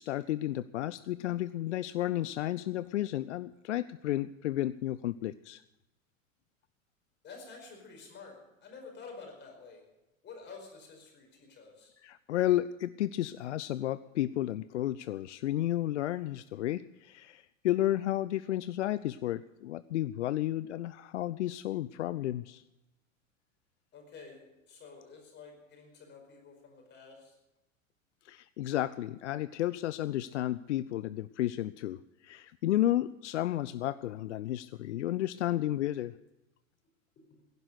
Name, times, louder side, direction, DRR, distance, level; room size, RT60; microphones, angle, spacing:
voice 1, 0.0-5.6 12.0-22.6 28.2-36.1, left 14 dB, 60° left, 16 dB, 0.5 m, -32 dB
voice 2, 7.2-9.8 10.2-11.9 23.9-27.3 37.3-37.4, left 4 dB, 25° left, 2 dB, 5.1 m, -50 dB
16.5 x 11.0 x 6.4 m, 0.96 s
figure-of-eight pair, 85°, 40 cm